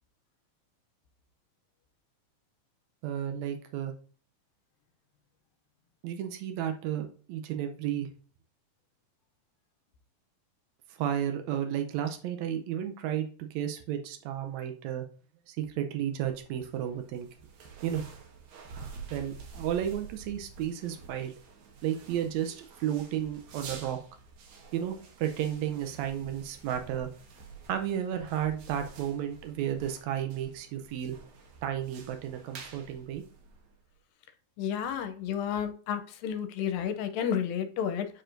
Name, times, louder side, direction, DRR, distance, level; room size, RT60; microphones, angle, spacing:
voice 1, 3.0-3.9 6.0-8.1 11.0-15.1 15.5-17.3 17.8-18.0 18.7-21.3 21.8-24.0 24.7-27.1 27.7-31.2 31.6-33.2, right 10 dB, 90° right, 5 dB, 1.5 m, -33 dB
sound 1, 16.1-33.9, right 4 dB, 65° right, 2.2 m, -49 dB
voice 2, 34.6-38.1, left 8 dB, 80° left, 8 dB, 2.3 m, -31 dB
9.5 x 4.4 x 2.6 m, 0.41 s
omnidirectional pair, 4.1 m